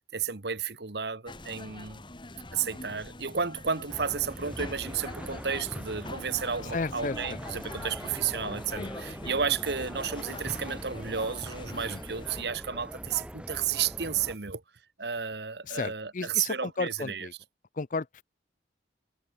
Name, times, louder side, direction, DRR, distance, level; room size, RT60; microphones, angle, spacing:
voice 1, 0.0-2.0 2.5-14.6 15.0-17.3, right 7 dB, 70° right, 1.4 m, -32 dB
sound 1, 1.3-12.4, left 2 dB, 30° left, 2.8 m, -43 dB
sound 2, 3.9-14.4, equal, 5° right, 2.6 m, -42 dB
voice 2, 6.7-7.6 8.8-8.9 11.9-12.0 15.7-17.3 17.8-18.2, left 4 dB, 45° left, 0.6 m, -34 dB
head